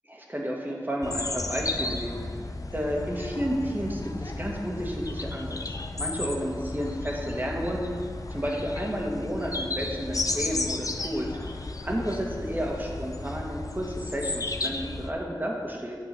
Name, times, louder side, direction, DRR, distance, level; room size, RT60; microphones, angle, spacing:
voice 1, 0.0-2.4 2.7-5.6 6.0-8.0 8.3-16.0, equal, 25° right, -1 dB, 1.4 m, -31 dB
sound 1, 1.0-15.1, left 2 dB, 45° left, 0.5 m, -34 dB
8.5 x 3.7 x 6.9 m, 2.2 s
wide cardioid pair, 50°, 8 cm